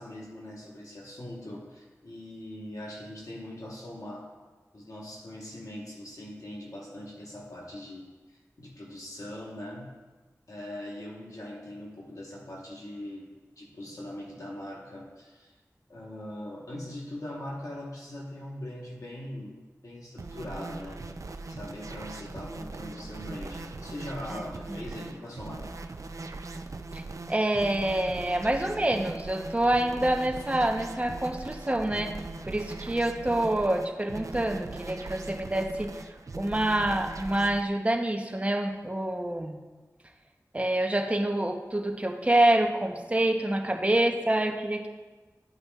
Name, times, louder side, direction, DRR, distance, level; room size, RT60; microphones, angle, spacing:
voice 1, 0.0-4.3 4.7-9.9 10.5-15.5 15.9-21.1 21.5-25.7, left 1 dB, 70° left, -2 dB, 1.1 m, -41 dB
sound 1, 20.2-37.6, right 3 dB, 65° right, 0.4 m, -40 dB
voice 2, 27.3-32.2 32.5-36.0 36.4-39.6 40.5-44.9, right 1 dB, 20° right, 3 dB, 0.8 m, -27 dB
10.5 x 8.6 x 2.4 m, 1.3 s
wide cardioid pair, 65°, 6 cm